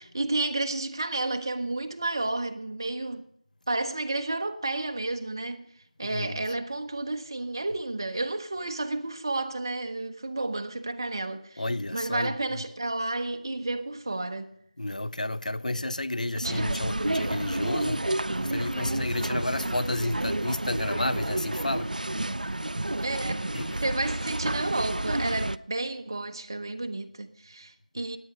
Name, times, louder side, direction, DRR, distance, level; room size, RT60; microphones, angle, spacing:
voice 1, 0.0-3.2 3.7-5.6 6.0-11.6 11.9-14.5 16.4-16.7 23.0-23.4 23.8-28.2, right 2 dB, 30° right, 0.9 m, -31 dB
voice 2, 11.6-12.3 14.8-21.9 23.5-23.7, left 1 dB, 70° left, 0.6 m, -31 dB
sound 1, 16.4-25.6, right 1 dB, 90° right, 0.6 m, -30 dB
17.0 x 9.6 x 5.2 m
figure-of-eight pair, 175°, 4 cm